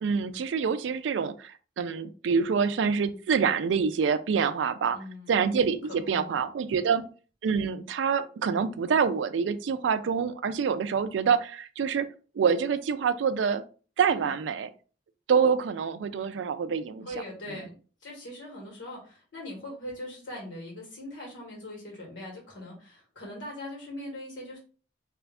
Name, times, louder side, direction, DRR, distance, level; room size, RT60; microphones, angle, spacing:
voice 1, 0.0-5.0 5.3-7.1 7.4-12.1 12.4-13.6 14.0-14.7 15.3-17.1, right 6 dB, 80° right, 0.3 m, -26 dB
voice 2, 4.9-5.4 5.9-6.4 6.7-6.9 14.1-14.3 17.0-17.7 18.0-24.6, left 1 dB, 90° left, 1.8 m, -41 dB
3.0 x 2.4 x 3.4 m
head